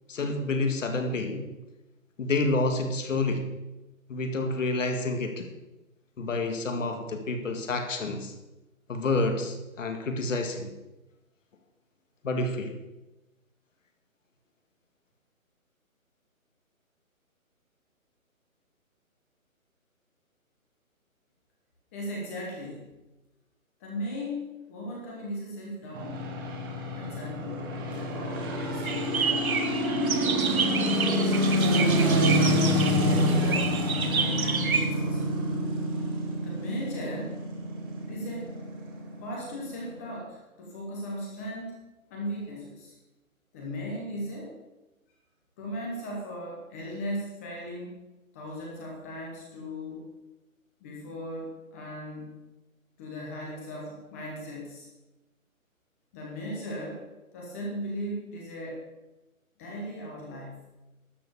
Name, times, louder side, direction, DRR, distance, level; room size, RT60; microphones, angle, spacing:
voice 1, 0.1-1.5 2.2-3.4 4.1-5.5 6.2-8.3 8.9-10.7 12.2-12.7, left 2 dB, 60° left, 6 dB, 2.0 m, -29 dB
voice 2, 21.9-22.9 23.8-26.3 26.9-29.6 29.8-31.8 32.7-33.8 34.1-35.4 36.4-37.4 38.1-38.5 39.2-41.8 42.1-42.9 43.5-44.5 45.6-48.0 48.3-50.1 50.8-52.4 53.0-54.9 56.1-57.1 57.3-58.8 59.6-60.7, equal, 10° left, -2 dB, 1.0 m, -37 dB
sound 1, 25.9-40.2, equal, 15° right, 1.2 m, -27 dB
sound 2, 28.8-34.8, right 5 dB, 75° right, 1.5 m, -30 dB
12.0 x 6.7 x 7.0 m, 1.1 s
hypercardioid pair, 160°, 42 cm